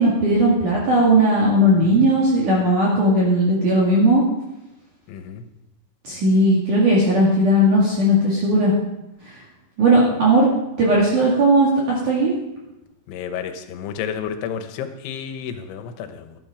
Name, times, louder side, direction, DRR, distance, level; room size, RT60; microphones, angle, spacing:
voice 1, 0.0-4.2 6.0-8.7 9.8-10.5 10.8-12.3, right 1 dB, 50° right, -5 dB, 3.3 m, -17 dB
voice 2, 5.1-5.4 13.1-16.4, left 8 dB, 85° left, 8 dB, 3.4 m, -31 dB
13.5 x 12.0 x 5.0 m, 0.92 s
omnidirectional pair, 5.3 m